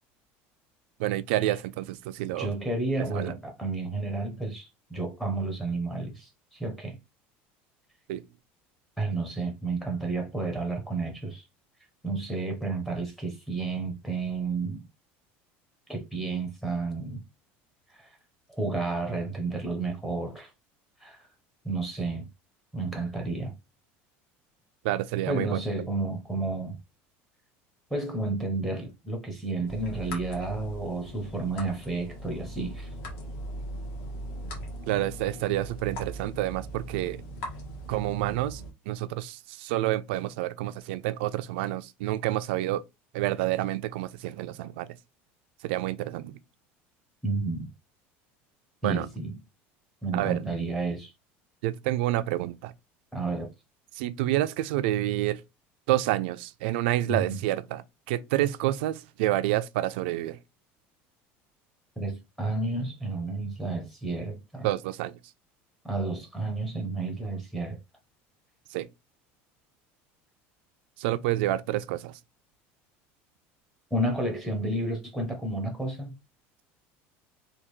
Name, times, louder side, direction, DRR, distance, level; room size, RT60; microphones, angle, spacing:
voice 1, 1.0-2.5 3.1-3.3 8.1-8.2 24.8-25.6 34.9-37.2 37.9-42.8 43.1-44.9 45.6-46.4 48.8-49.1 50.1-50.5 51.6-52.7 53.9-55.4 55.9-60.4 64.6-65.2 68.7-68.9 71.0-72.2, right 15 dB, 90° right, 0.3 m, -28 dB
voice 2, 2.4-7.0 9.0-11.4 12.0-14.8 15.9-17.2 18.0-18.1 18.6-20.5 21.0-21.3 21.6-22.3 22.7-23.5 25.3-26.8 27.9-32.9 47.2-47.7 48.8-49.3 50.0-51.1 53.1-53.5 57.1-57.4 62.0-64.7 65.8-67.8 73.9-76.2, right 3 dB, 5° left, 0.6 m, -31 dB
sound 1, 29.6-38.7, right 1 dB, 65° left, 1.2 m, -40 dB
3.3 x 2.3 x 3.0 m
cardioid pair, 175°, 6 cm